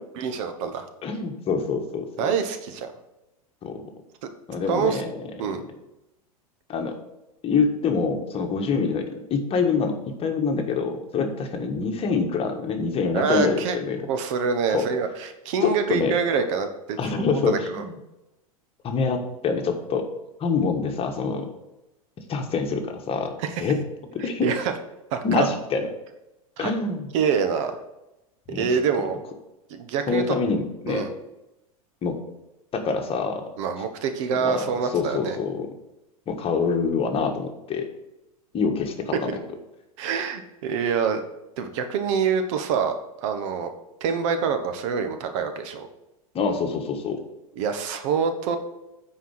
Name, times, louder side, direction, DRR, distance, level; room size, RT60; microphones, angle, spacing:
voice 1, 0.2-0.9 2.2-2.9 4.7-5.0 5.4-5.6 13.1-13.8 14.1-17.0 17.3-17.8 23.5-23.7 24.2-24.7 25.1-25.5 26.6-26.7 27.1-27.8 28.5-29.2 29.7-30.3 30.9-31.1 33.6-35.4 40.0-41.2 41.6-43.0 43.2-43.7 44.0-45.9 47.6-48.6, right 6 dB, 55° right, 7 dB, 1.2 m, -26 dB
voice 2, 1.0-2.3 3.6-3.8 4.5-5.1 6.7-7.0 7.4-14.0 14.7-14.9 15.6-16.2 17.0-17.9 18.8-20.1 20.4-21.5 22.3-23.3 23.6-23.8 24.1-24.5 25.2-25.9 26.6-27.1 28.5-28.7 30.1-31.1 32.0-32.2 32.7-33.4 34.4-34.7 34.9-35.7 36.3-37.9 38.5-39.4 46.3-47.2, left 5 dB, 30° left, 4 dB, 1.5 m, -25 dB
9.2 x 4.7 x 6.5 m, 0.94 s
hypercardioid pair, 90°, 19 cm